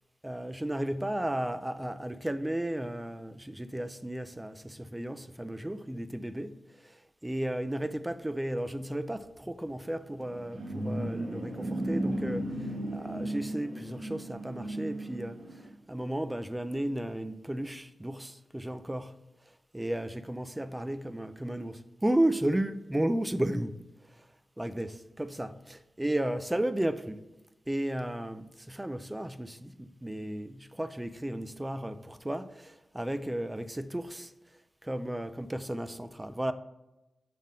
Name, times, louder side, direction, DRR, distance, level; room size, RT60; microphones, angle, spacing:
voice 1, 0.2-19.2 19.7-24.3 24.6-27.3 27.7-34.3 34.8-36.5, right 1 dB, 10° right, 0.3 m, -34 dB
sound 1, 10.1-15.7, right 1 dB, 85° right, 1.4 m, -35 dB
5.7 x 3.7 x 4.9 m
wide cardioid pair, 170°, 0 cm